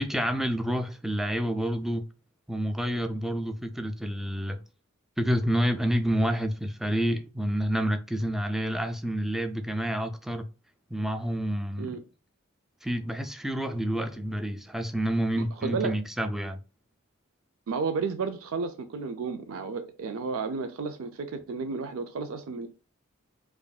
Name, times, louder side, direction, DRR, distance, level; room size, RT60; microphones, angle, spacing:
voice 1, 0.0-2.1 2.5-4.6 5.2-10.4 10.9-12.0 12.8-16.6, equal, ahead, 0.3 m, -28 dB
voice 2, 15.4-16.0 17.7-22.7, right 4 dB, 80° right, 0.4 m, -32 dB
4.9 x 2.5 x 2.3 m
head